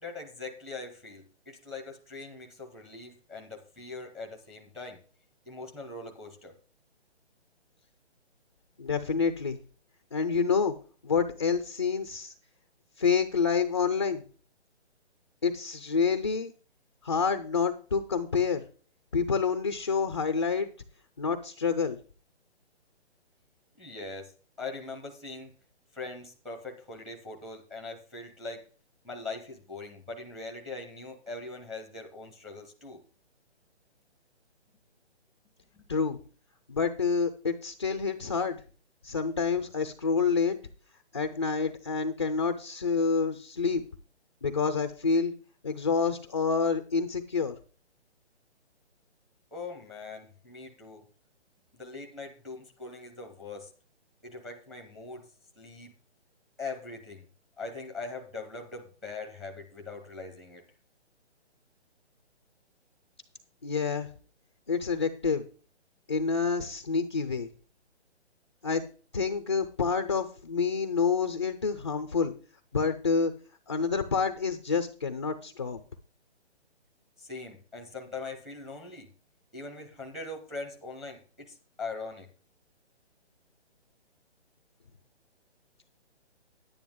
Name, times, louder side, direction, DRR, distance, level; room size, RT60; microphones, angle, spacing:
voice 1, 0.0-5.0 5.5-6.5 23.7-25.5 25.9-28.7 29.0-33.0 35.7-35.9 49.5-51.1 51.7-53.7 54.2-55.3 55.6-55.9 56.6-57.2 57.6-60.6 77.2-79.1 79.5-82.3, left 3 dB, ahead, 4 dB, 0.7 m, -41 dB
voice 2, 8.8-9.6 10.1-10.7 11.0-12.3 13.0-14.2 15.4-16.5 17.0-18.6 19.1-20.7 21.2-22.0 35.9-36.2 36.7-38.6 39.0-40.6 41.1-43.8 44.4-45.3 45.6-47.6 63.6-64.1 64.7-65.5 66.1-67.5 68.6-68.8 69.1-72.3 72.7-73.3 73.7-75.8, left 5 dB, 25° left, 9 dB, 0.4 m, -28 dB
10.5 x 9.3 x 3.6 m, 0.38 s
hypercardioid pair, 150°, 34 cm